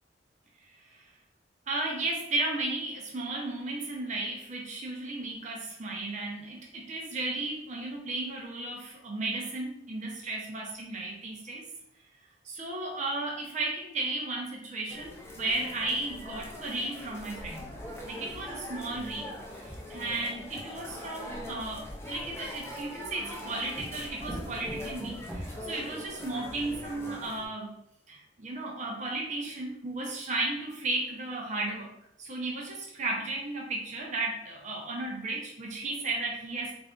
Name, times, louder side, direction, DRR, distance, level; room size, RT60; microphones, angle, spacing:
voice 1, 0.7-1.1 1.7-11.6 12.4-17.7 18.0-27.8 28.1-31.9 32.2-36.8, right 2 dB, 40° right, -1 dB, 0.6 m, -34 dB
sound 1, 14.9-27.5, left 1 dB, 15° left, 0.5 m, -42 dB
sound 2, 19.6-21.1 22.2-23.1 23.7-25.6, equal, 5° right, 1.3 m, -44 dB
3.3 x 2.6 x 3.6 m, 0.74 s
head